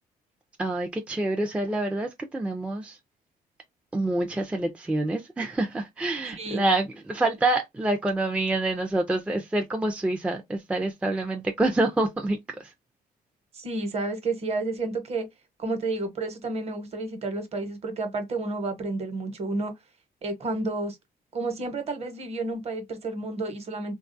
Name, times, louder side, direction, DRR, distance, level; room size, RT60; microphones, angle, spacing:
voice 1, 0.6-3.0 3.9-12.7, right 2 dB, 10° right, 0.4 m, -27 dB
voice 2, 13.5-15.3 15.6-19.7 20.2-21.0 21.3-24.0, right 2 dB, 40° right, 1.0 m, -30 dB
3.6 x 2.3 x 2.5 m
cardioid pair, 145°, 16 cm